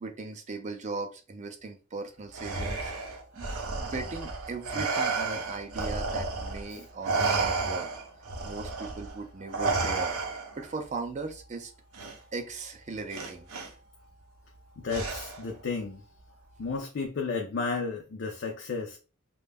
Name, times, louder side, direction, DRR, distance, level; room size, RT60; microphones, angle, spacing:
voice 1, 0.0-2.9 3.3-3.5 3.8-7.9 8.4-10.1 10.6-11.7 12.3-13.5, right 3 dB, 35° right, 0.4 m, -38 dB
Respiratory sounds, 2.3-6.7 7.0-10.7 11.9-12.1 13.1-13.7 14.9-15.5, right 3 dB, 90° right, 0.6 m, -31 dB
voice 2, 14.8-16.0 16.6-19.0, left 4 dB, 55° left, 0.4 m, -33 dB
2.2 x 2.0 x 3.3 m
head